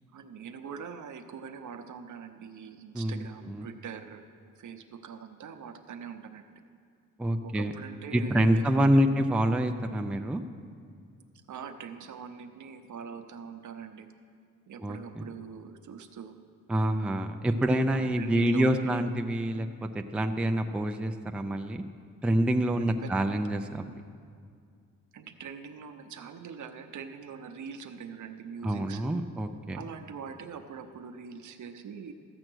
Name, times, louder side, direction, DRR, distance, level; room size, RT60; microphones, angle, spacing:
voice 1, 0.1-4.2 4.6-6.6 7.4-8.8 9.1-9.3 11.5-14.1 14.7-16.4 17.6-19.1 22.8-23.2 25.1-29.2 29.7-32.1, right 6 dB, 65° right, 8 dB, 0.8 m, -43 dB
voice 2, 2.9-3.7 7.2-7.7 8.1-10.4 14.8-15.2 16.7-21.8 22.2-23.9 28.6-29.8, right 1 dB, 5° right, 5 dB, 0.4 m, -27 dB
14.0 x 7.7 x 6.2 m, 2.3 s
wide cardioid pair, 135°, 32 cm